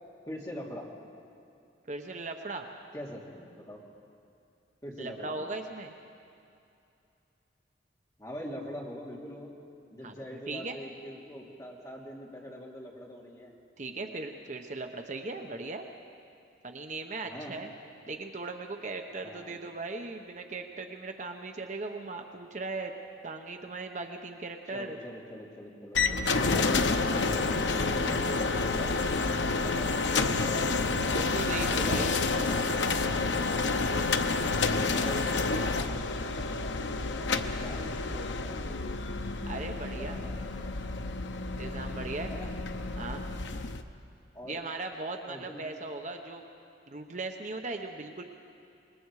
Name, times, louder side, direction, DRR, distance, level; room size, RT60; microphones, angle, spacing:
voice 1, 0.3-0.9 2.9-3.8 4.8-5.4 8.2-9.5 9.9-13.5 17.2-17.5 19.2-19.6 24.7-28.9 29.5-30.8 31.5-32.6 34.9-38.6 40.0-40.5 42.2-42.5 44.3-44.6 45.3-45.7, equal, 20° left, -3 dB, 2.8 m, -43 dB
voice 2, 1.9-2.7 5.0-5.9 10.0-10.1 10.5-10.8 13.8-15.9 16.6-17.7 18.1-22.9 23.2-25.0 31.1-32.2 39.5-40.2 41.6-42.3 43.0-43.2 44.4-46.4 46.9-48.2, right 3 dB, 40° right, 4 dB, 0.9 m, -38 dB
sound 1, 25.9-43.8, left 3 dB, 80° left, 0.8 m, -29 dB
26.0 x 21.0 x 4.8 m, 2.6 s
head